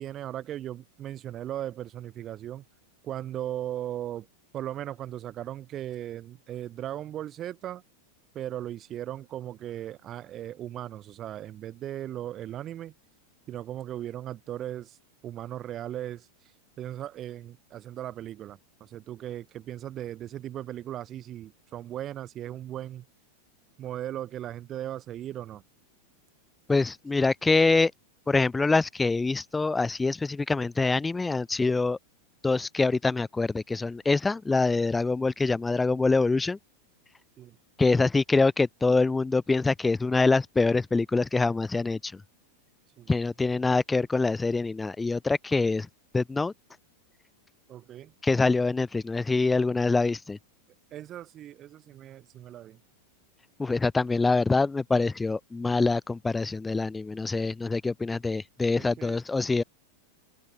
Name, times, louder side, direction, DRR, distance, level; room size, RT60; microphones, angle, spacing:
voice 1, 0.0-2.6 3.0-4.3 4.5-7.8 8.3-12.9 13.5-15.0 15.2-16.5 16.8-23.1 23.8-25.6 37.4-37.6 43.0-43.1 47.7-48.1 50.9-52.8 58.8-59.2, right 12 dB, 30° right, 2.9 m, -37 dB
voice 2, 26.7-27.9 28.3-32.0 32.4-36.6 37.8-42.2 43.1-45.9 46.1-46.5 48.2-50.4 53.6-59.6, left 3 dB, 10° left, 0.4 m, -25 dB
open air
figure-of-eight pair, 90°, 0 cm